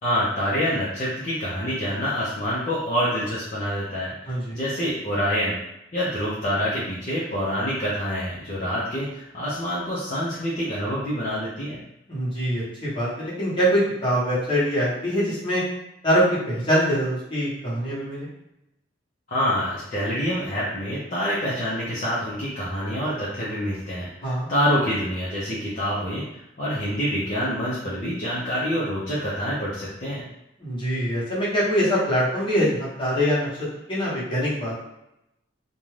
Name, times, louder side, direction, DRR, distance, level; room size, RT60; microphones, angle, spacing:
voice 1, 0.0-4.1 4.5-5.6 5.9-11.8 19.3-30.2, equal, 45° left, -9 dB, 0.6 m, -26 dB
voice 2, 4.3-4.6 12.1-15.6 16.0-18.3 24.2-24.5 30.6-33.5 33.9-34.7, equal, 30° left, -9 dB, 1.1 m, -23 dB
2.5 x 2.2 x 3.2 m, 0.85 s
head